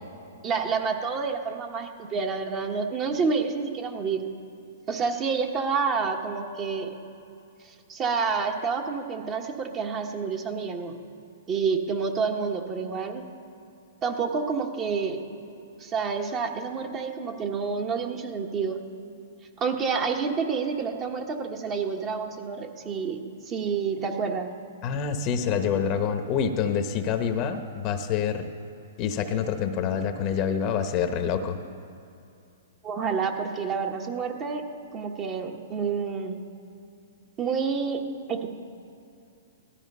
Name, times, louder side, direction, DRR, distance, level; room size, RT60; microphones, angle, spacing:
voice 1, 0.4-4.2 4.9-6.9 7.7-11.0 11.5-13.2 14.0-15.2 15.8-18.8 19.6-23.2 23.5-24.5 32.8-34.6 34.9-36.4 37.4-38.0 38.3-38.5, right 5 dB, 25° right, 3 dB, 1.2 m, -28 dB
voice 2, 24.8-28.5 29.0-31.6, left 7 dB, 35° left, 7 dB, 1.0 m, -26 dB
17.0 x 13.5 x 5.5 m, 2.6 s
hypercardioid pair, 140°, 0 cm